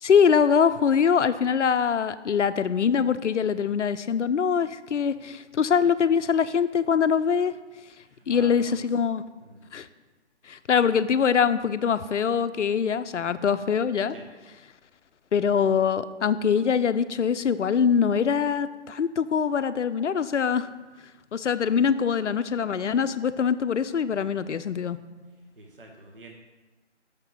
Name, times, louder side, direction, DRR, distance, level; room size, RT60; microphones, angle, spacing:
voice 1, 0.0-7.5 8.3-9.2 9.7-9.9 10.5-14.1 15.3-20.7 21.3-25.0, left 7 dB, 80° left, 13 dB, 0.5 m, -23 dB
voice 2, 8.0-8.8 9.4-9.6 14.1-14.3 25.6-26.3, right 2 dB, 50° right, 2 dB, 0.8 m, -47 dB
6.5 x 3.8 x 5.9 m, 1.2 s
figure-of-eight pair, 165°, 36 cm